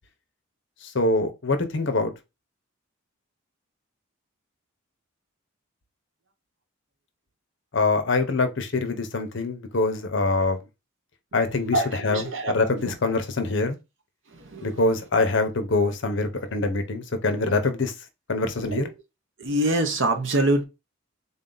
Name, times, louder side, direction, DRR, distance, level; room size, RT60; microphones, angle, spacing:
voice 1, 0.8-2.1 7.7-10.6 11.3-13.8 14.6-17.9 18.3-18.9, left 3 dB, 55° left, 0.8 m, -24 dB
voice 2, 11.7-12.9 14.5-14.8 17.4-17.6 18.7-18.9 19.4-20.7, right 1 dB, 60° right, 0.9 m, -25 dB
3.9 x 2.7 x 3.8 m
head